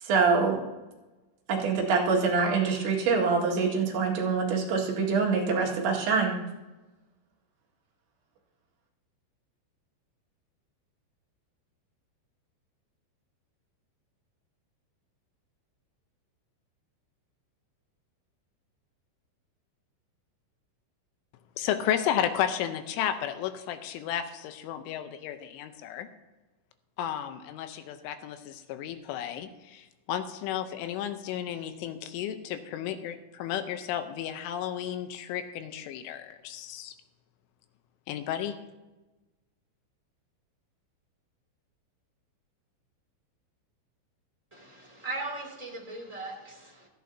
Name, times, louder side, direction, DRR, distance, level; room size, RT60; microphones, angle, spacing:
voice 1, 0.0-0.6 1.5-6.4, right 5 dB, 75° right, -2 dB, 4.1 m, -25 dB
voice 2, 21.6-26.1 27.0-36.9 38.1-38.6, left 10 dB, 85° left, 8 dB, 3.3 m, -33 dB
voice 3, 44.5-46.9, right 2 dB, 10° right, -2 dB, 1.7 m, -38 dB
17.5 x 14.0 x 2.8 m, 1.1 s
omnidirectional pair, 5.6 m